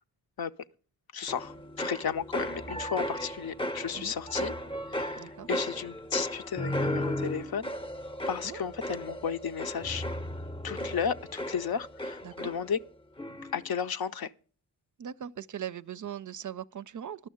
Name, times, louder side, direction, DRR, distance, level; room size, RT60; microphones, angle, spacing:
voice 1, 1.1-4.5 4.9-7.7 8.3-10.1 10.6-12.8 13.5-14.3, left 7 dB, 60° left, 0.7 m, -34 dB
sound 1, 1.3-12.9 13.2-13.7, left 1 dB, 15° left, 0.7 m, -35 dB
voice 2, 5.2-5.5 8.4-8.6 12.2-12.5 15.0-17.3, right 9 dB, 50° right, 0.5 m, -40 dB
11.5 x 6.4 x 7.8 m
cardioid pair, 55°, 41 cm